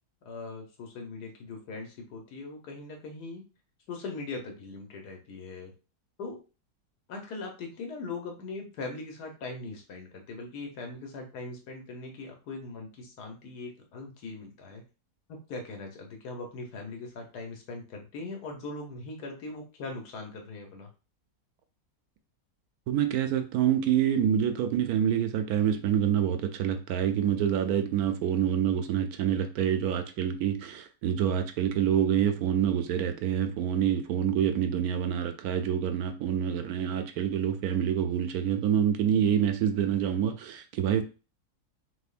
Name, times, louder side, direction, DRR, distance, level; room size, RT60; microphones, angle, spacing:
voice 1, 0.2-3.4 3.9-5.7 6.2-6.4 7.1-14.8 15.3-20.9, left 3 dB, 80° left, 1.5 m, -40 dB
voice 2, 22.9-41.0, right 9 dB, 75° right, 1.1 m, -27 dB
6.2 x 2.8 x 2.5 m
omnidirectional pair, 1.7 m